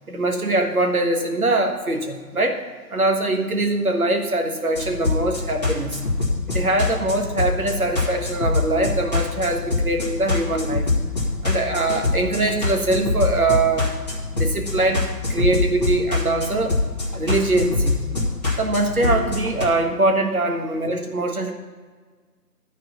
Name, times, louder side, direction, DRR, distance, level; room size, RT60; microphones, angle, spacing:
voice 1, 0.1-2.6 2.9-6.0 6.5-10.9 11.4-13.9 14.3-15.0 15.3-16.8 17.1-18.0 18.6-21.5, right 2 dB, 60° right, 3 dB, 1.6 m, -22 dB
sound 1, 4.8-19.7, left 3 dB, 25° left, 1.7 m, -24 dB
12.5 x 4.6 x 7.1 m, 1.5 s
figure-of-eight pair, 170°, 49 cm